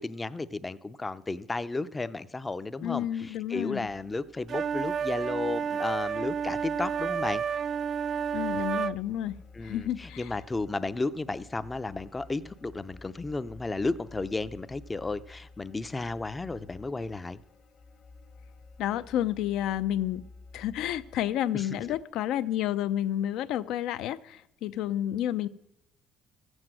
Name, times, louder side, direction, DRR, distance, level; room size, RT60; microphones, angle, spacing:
voice 1, 0.0-7.4 9.6-17.4 21.5-21.8, left 3 dB, 15° left, 13 dB, 0.5 m, -33 dB
voice 2, 2.8-3.9 8.3-10.3 18.8-20.2 20.5-25.5, left 12 dB, 70° left, 13 dB, 0.6 m, -30 dB
sound 1, 3.8-22.0, left 3 dB, 45° left, 1.0 m, -52 dB
sound 2, 4.5-9.0, right 7 dB, 40° right, 0.4 m, -30 dB
14.0 x 7.9 x 7.6 m, 0.83 s
cardioid pair, 135°, 0 cm